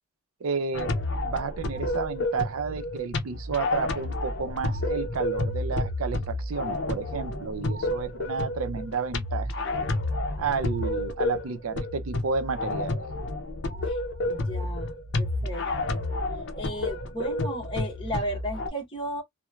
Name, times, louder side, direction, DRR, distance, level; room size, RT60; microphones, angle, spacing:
voice 1, 0.4-0.9 1.2-9.5 10.4-13.0, right 5 dB, 90° right, 0.5 m, -31 dB
sound 1, 0.7-18.7, left 2 dB, 55° left, 0.6 m, -30 dB
voice 2, 14.2-15.6 15.9-16.1 16.6-19.2, equal, 25° left, 0.9 m, -34 dB
2.9 x 2.1 x 2.2 m
head